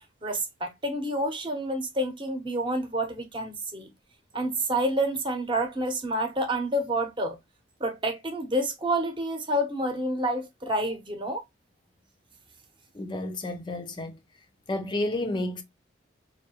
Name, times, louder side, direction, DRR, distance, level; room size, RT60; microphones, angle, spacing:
voice 1, 0.2-3.9 4.3-7.4 7.8-11.4, right 1 dB, 25° right, 0.9 m, -28 dB
voice 2, 12.9-14.2 14.7-15.6, left 1 dB, 25° left, 0.5 m, -31 dB
4.6 x 2.7 x 2.8 m
head